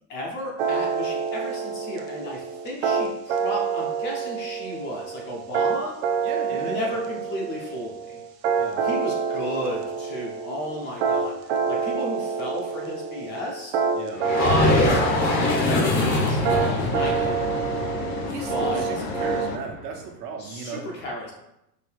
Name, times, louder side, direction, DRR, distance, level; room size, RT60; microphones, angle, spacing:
voice 1, 0.1-5.9 6.5-8.2 8.8-13.7 14.4-15.0 15.4-17.5 18.5-18.8 20.4-21.3, left 1 dB, 25° left, -2 dB, 0.5 m, -33 dB
sound 1, 0.6-19.5, right 6 dB, 40° right, 0.4 m, -27 dB
voice 2, 6.2-6.9 8.5-8.8 13.9-14.2 18.3-20.9, right 4 dB, 65° right, 1 dB, 1.1 m, -35 dB
sound 2, 14.2-19.8, left 2 dB, 90° left, 1.3 m, -24 dB
sound 3, 14.5-19.6, left 5 dB, 70° left, 0.7 m, -34 dB
4.5 x 2.6 x 3.4 m, 0.84 s
supercardioid pair, 145°, 50 cm